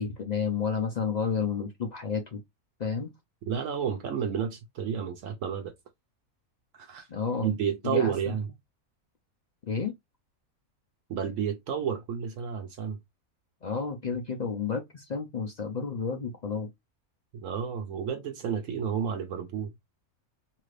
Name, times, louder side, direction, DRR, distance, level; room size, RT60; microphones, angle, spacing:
voice 1, 0.0-2.4 2.8-3.1 7.1-7.5 7.8-8.3 9.7-9.9 13.6-16.7, left 5 dB, 65° left, 0.4 m, -31 dB
voice 2, 3.5-5.7 6.7-7.1 7.4-8.5 11.1-13.0 17.3-19.7, right 7 dB, 70° right, 0.9 m, -31 dB
2.8 x 2.4 x 3.2 m
omnidirectional pair, 1.5 m